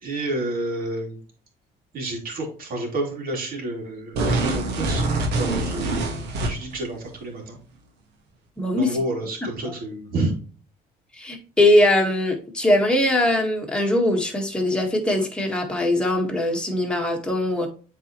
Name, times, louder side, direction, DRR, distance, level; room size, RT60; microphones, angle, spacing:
voice 1, 0.0-1.2 1.9-7.6 8.8-10.3, right 2 dB, 60° right, -1 dB, 3.2 m, -30 dB
sound 1, 4.1-6.8, right 2 dB, 85° right, 1.7 m, -24 dB
voice 2, 8.6-9.0 9.6-9.7 11.1-17.7, left 1 dB, 5° left, 1 dB, 1.7 m, -21 dB
7.9 x 4.3 x 3.1 m, 0.39 s
cardioid pair, 110°, 17 cm